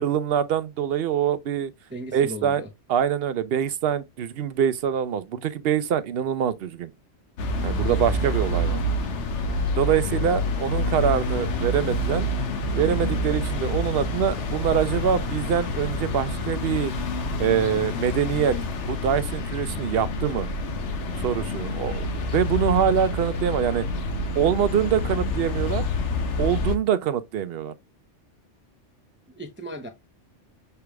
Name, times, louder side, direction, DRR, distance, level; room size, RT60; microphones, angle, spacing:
voice 1, 0.0-1.7 2.1-2.6 2.9-6.9 7.6-8.8 9.8-12.3 12.7-16.9 17.4-18.6 18.9-20.5 21.2-22.1 22.3-23.8 24.4-25.8 26.4-27.7, right 9 dB, 60° right, 0.7 m, -24 dB
voice 2, 1.9-2.7 29.4-29.9, right 1 dB, 15° right, 0.5 m, -36 dB
sound 1, 7.4-26.8, left 1 dB, 75° left, 1.1 m, -27 dB
6.7 x 3.2 x 2.2 m
omnidirectional pair, 1.2 m